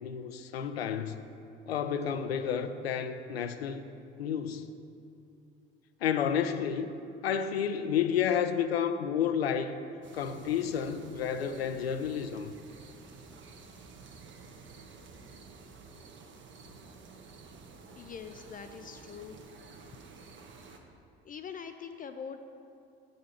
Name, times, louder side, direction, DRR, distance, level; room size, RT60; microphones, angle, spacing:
voice 1, 0.0-1.2 1.7-3.8 4.2-4.7 6.0-6.9 7.2-9.8 10.1-12.5, left 8 dB, 85° left, 0.5 m, -31 dB
sound 1, 10.0-20.8, right 4 dB, 40° right, 1.0 m, -51 dB
voice 2, 18.0-19.4 21.2-22.4, left 7 dB, 30° left, 0.4 m, -43 dB
9.2 x 6.5 x 4.3 m
hypercardioid pair, 60°, 30 cm